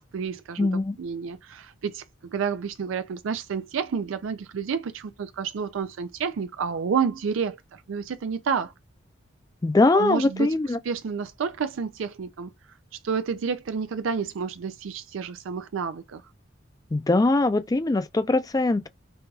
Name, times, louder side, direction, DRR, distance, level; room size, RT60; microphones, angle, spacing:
voice 1, 0.0-0.7 1.0-8.7 9.9-10.6 10.8-12.5 13.0-16.2, right 6 dB, 80° right, 0.4 m, -30 dB
voice 2, 0.6-1.0 9.6-10.8 16.9-18.9, left 2 dB, 20° left, 0.3 m, -22 dB
5.4 x 2.3 x 2.7 m
head